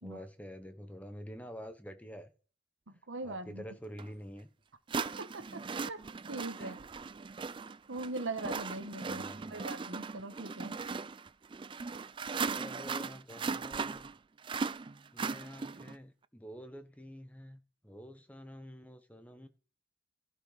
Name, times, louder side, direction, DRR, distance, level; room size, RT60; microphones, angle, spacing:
voice 1, 0.0-2.3 3.2-4.5 6.6-6.8 9.1-9.6 12.5-14.1 15.1-19.5, equal, 10° left, 1.1 m, -48 dB
voice 2, 2.9-3.6 5.2-6.0 6.3-6.8 7.9-10.8, right 2 dB, 80° right, 1.3 m, -41 dB
sound 1, 4.0-4.1 4.9-16.0, right 4 dB, 25° right, 0.4 m, -38 dB
16.0 x 5.7 x 4.1 m
head